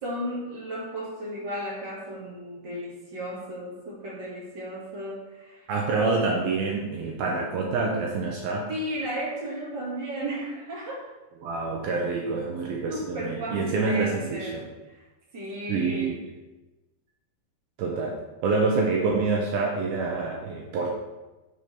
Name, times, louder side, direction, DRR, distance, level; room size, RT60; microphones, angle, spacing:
voice 1, 0.0-5.6 8.7-11.0 12.9-15.0 15.3-16.1, equal, 50° right, -5 dB, 1.3 m, -34 dB
voice 2, 5.7-8.7 11.4-14.5 15.7-16.2 17.8-20.9, right 3 dB, 75° right, -1 dB, 2.3 m, -27 dB
6.9 x 4.8 x 5.7 m, 1.1 s
omnidirectional pair, 5.1 m